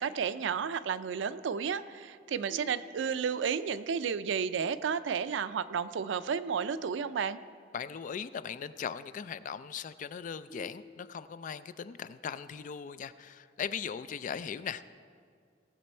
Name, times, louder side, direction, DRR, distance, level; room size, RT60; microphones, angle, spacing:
voice 1, 0.0-7.4, right 6 dB, 85° right, 14 dB, 0.4 m, -32 dB
sound 1, 2.5-3.4 6.5-7.5 10.5-11.5, right 2 dB, 15° left, 1.4 m, -51 dB
voice 2, 7.7-15.0, left 7 dB, 45° left, 14 dB, 0.3 m, -39 dB
18.0 x 6.8 x 4.3 m, 2.2 s
head